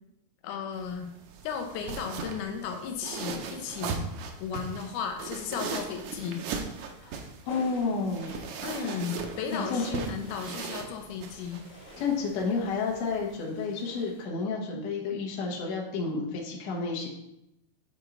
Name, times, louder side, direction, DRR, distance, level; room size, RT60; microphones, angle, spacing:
voice 1, 0.4-1.1 1.4-4.1 4.4-6.4 8.6-11.6, left 7 dB, 85° left, 4 dB, 2.2 m, -35 dB
sound 1, 0.7-13.4, right 5 dB, 75° right, 1.9 m, -39 dB
sound 2, 7.4-14.2, left 2 dB, 40° left, 1.1 m, -50 dB
voice 2, 7.5-8.3 9.7-10.1 12.0-17.1, left 4 dB, 65° left, -2 dB, 2.3 m, -30 dB
7.9 x 4.5 x 3.8 m, 0.84 s
omnidirectional pair, 3.6 m